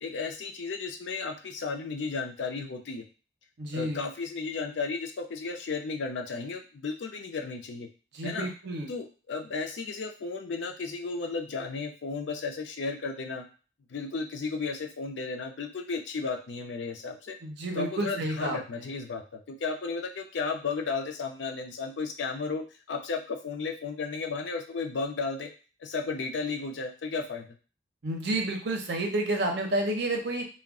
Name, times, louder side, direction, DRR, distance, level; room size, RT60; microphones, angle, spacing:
voice 1, 0.0-3.0 3.7-7.9 8.2-8.5 8.9-13.4 13.9-17.4 17.7-25.5 25.8-27.5, left 4 dB, 80° left, 4 dB, 0.5 m, -34 dB
voice 2, 3.6-4.0 8.1-8.9 17.4-18.8 28.0-30.5, right 1 dB, 60° right, 2 dB, 0.6 m, -30 dB
2.3 x 2.1 x 3.5 m, 0.36 s
head